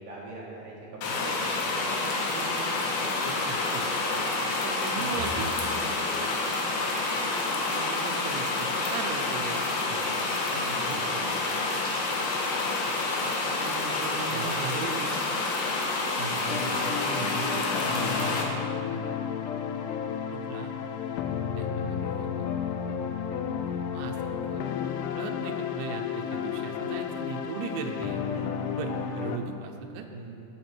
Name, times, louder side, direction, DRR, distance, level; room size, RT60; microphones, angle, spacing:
voice 1, 0.0-1.6 5.0-5.2 10.5-11.0 14.3-14.5 16.2-16.5 21.7-22.0 28.3-28.7 30.1-30.4, right 3 dB, 60° right, -4 dB, 2.3 m, -41 dB
sound 1, 1.0-18.4, left 3 dB, 65° left, 2.8 m, -28 dB
voice 2, 2.0-2.8 3.0-3.9 4.6-5.8 6.1-6.2 7.5-10.3 10.8-11.9 13.4-15.2 16.3-19.2 20.3-20.7 21.5-22.6 23.5-28.2 28.8-30.1, right 6 dB, 75° right, 2 dB, 3.0 m, -39 dB
sound 2, 16.5-29.4, left 7 dB, 85° left, 3.1 m, -32 dB
17.5 x 8.9 x 4.5 m, 2.7 s
omnidirectional pair, 5.4 m